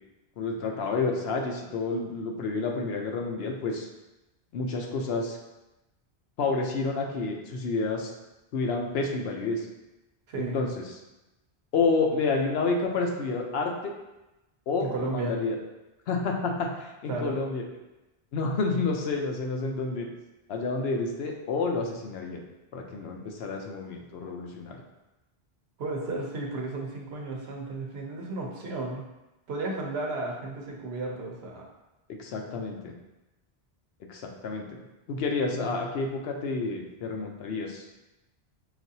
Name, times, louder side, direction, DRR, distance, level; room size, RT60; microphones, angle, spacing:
voice 1, 0.4-3.9 4.5-5.4 6.4-8.1 8.5-9.7 10.4-11.0 11.7-13.9 14.7-15.6 16.1-17.6 18.3-20.1 20.5-22.4 22.7-24.8 32.1-32.9 34.1-34.8 35.1-37.9, left 3 dB, 75° left, 2 dB, 0.8 m, -29 dB
voice 2, 14.8-15.3 17.1-17.4 25.8-29.0 29.5-31.7 35.5-35.8, right 3 dB, 75° right, -1 dB, 1.0 m, -33 dB
5.9 x 2.5 x 2.7 m, 1.0 s
omnidirectional pair, 1.1 m